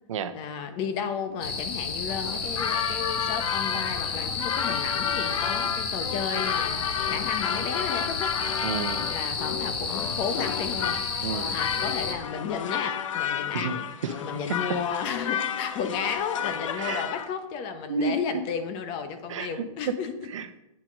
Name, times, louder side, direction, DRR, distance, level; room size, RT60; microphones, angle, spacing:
voice 1, 0.3-8.4 9.1-11.0 11.5-13.9 14.2-20.3, left 6 dB, 30° left, 8 dB, 0.9 m, -33 dB
sound 1, 1.4-12.1, left 5 dB, 45° left, 1.5 m, -31 dB
sound 2, 2.1-17.3, left 8 dB, 70° left, 0.7 m, -32 dB
voice 2, 8.6-9.2 11.2-11.5 13.5-13.7 14.0-14.2 14.5-14.8 16.8-17.0 17.9-18.1 19.3-20.0 20.3-20.6, right 6 dB, 65° right, 10 dB, 0.9 m, -31 dB
8.7 x 6.0 x 5.1 m, 0.89 s
hypercardioid pair, 145°, 17 cm